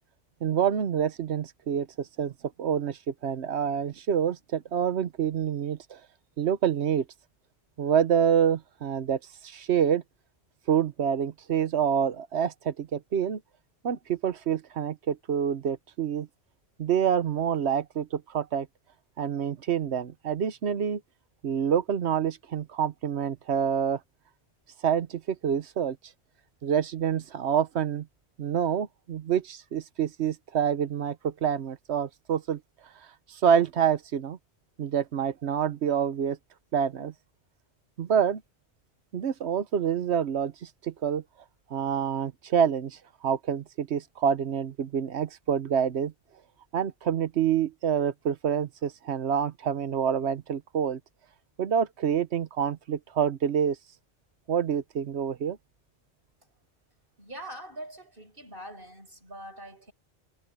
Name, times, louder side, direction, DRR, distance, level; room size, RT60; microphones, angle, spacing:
voice 1, 0.4-2.3 2.6-6.0 6.4-7.0 7.8-10.0 10.7-13.4 13.8-16.3 16.8-18.7 19.2-21.0 21.4-24.0 24.8-26.0 26.6-28.1 28.4-32.6 33.3-34.4 34.8-36.4 36.7-37.1 38.0-38.4 39.1-41.2 41.7-46.1 46.7-51.0 51.6-53.8 54.5-55.6, right 8 dB, 80° right, 1.1 m, -27 dB
voice 2, 57.2-59.9, right 1 dB, 55° right, 6.5 m, -43 dB
omnidirectional pair, 1.1 m